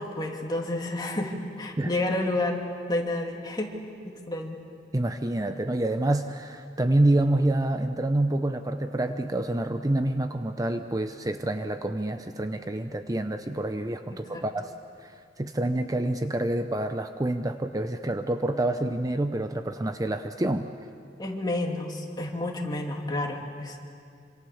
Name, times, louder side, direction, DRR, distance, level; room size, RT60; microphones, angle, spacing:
voice 1, 0.0-3.7 4.0-4.6 14.1-14.4 21.2-23.8, left 2 dB, 25° left, 0 dB, 2.8 m, -30 dB
voice 2, 4.9-14.7 15.0-20.7, right 1 dB, 20° right, 8 dB, 0.7 m, -27 dB
27.0 x 26.0 x 7.2 m, 2.3 s
head